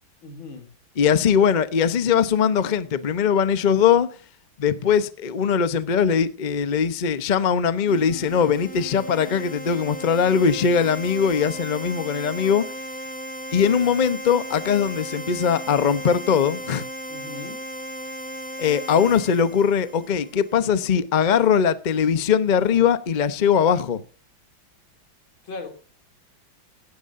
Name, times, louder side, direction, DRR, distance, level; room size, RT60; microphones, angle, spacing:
voice 1, 0.2-0.7 17.1-17.6 25.4-25.7, left 3 dB, 80° left, 3.6 m, -37 dB
voice 2, 1.0-4.1 4.6-12.6 13.5-16.9 18.6-24.0, left 7 dB, 50° left, 0.5 m, -21 dB
sound 1, 7.9-20.6, right 1 dB, 5° left, 0.8 m, -36 dB
17.0 x 12.5 x 2.6 m
omnidirectional pair, 2.1 m